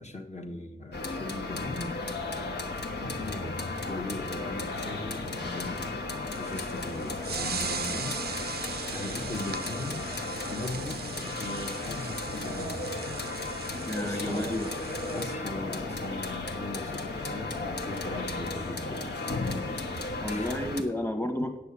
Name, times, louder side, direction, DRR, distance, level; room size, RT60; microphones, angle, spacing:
voice 1, 0.0-2.0 3.0-8.2 8.9-10.1 10.3-12.9 14.0-14.6 15.1-19.4 20.3-20.5, left 2 dB, 40° left, 2 dB, 1.1 m, -39 dB
sound 1, 0.9-20.8, left 2 dB, 85° left, 1.3 m, -35 dB
sound 2, 6.3-15.3, right 6 dB, 70° right, 0.5 m, -39 dB
voice 2, 13.9-14.7 20.2-21.6, left 1 dB, 10° left, 4 dB, 1.1 m, -31 dB
9.2 x 6.6 x 8.2 m, 1.0 s
wide cardioid pair, 95°, 17 cm